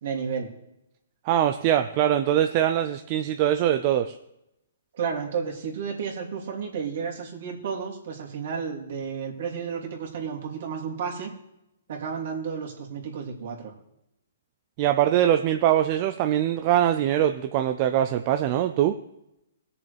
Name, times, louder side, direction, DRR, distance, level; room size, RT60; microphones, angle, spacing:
voice 1, 0.0-0.5 4.9-11.3 11.9-13.7, right 6 dB, 60° right, -1 dB, 2.7 m, -32 dB
voice 2, 1.3-4.2 14.8-19.0, right 11 dB, 35° right, 8 dB, 0.5 m, -22 dB
19.5 x 6.9 x 3.4 m, 0.85 s
hypercardioid pair, 145°, 0 cm